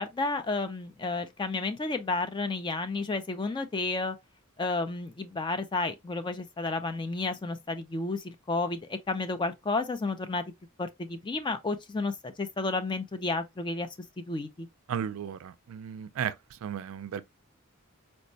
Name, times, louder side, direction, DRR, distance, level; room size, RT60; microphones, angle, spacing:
voice 1, 0.0-4.2 4.6-10.4 10.8-13.9 14.2-14.7, left 3 dB, 20° left, 0.3 m, -31 dB
voice 2, 14.9-16.3 16.6-17.3, right 8 dB, 70° right, 0.3 m, -34 dB
4.4 x 2.1 x 2.6 m
head